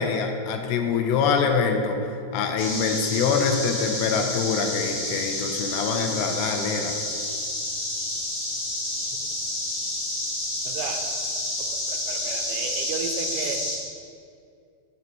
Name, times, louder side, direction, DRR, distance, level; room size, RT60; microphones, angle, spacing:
voice 1, 0.0-2.0 2.3-7.0, left 5 dB, 85° left, 4 dB, 2.7 m, -24 dB
sound 1, 2.6-13.8, left 1 dB, 50° left, 1.7 m, -29 dB
voice 2, 10.7-11.0 11.6-13.7, right 6 dB, 85° right, 5 dB, 2.9 m, -33 dB
9.5 x 8.5 x 3.0 m, 2.4 s
omnidirectional pair, 5.1 m